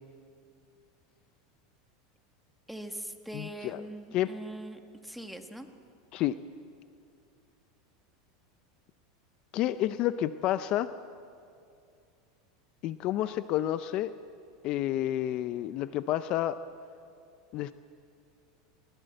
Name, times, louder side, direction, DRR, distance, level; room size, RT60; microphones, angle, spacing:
voice 1, 2.7-5.7, right 1 dB, ahead, 6 dB, 1.2 m, -42 dB
voice 2, 3.3-3.8 4.1-4.3 6.1-6.4 9.5-10.9 12.8-14.1 14.6-16.6 17.5-17.7, left 13 dB, 45° left, 13 dB, 0.5 m, -30 dB
19.5 x 18.0 x 7.8 m, 2.4 s
supercardioid pair, 145°, 2 cm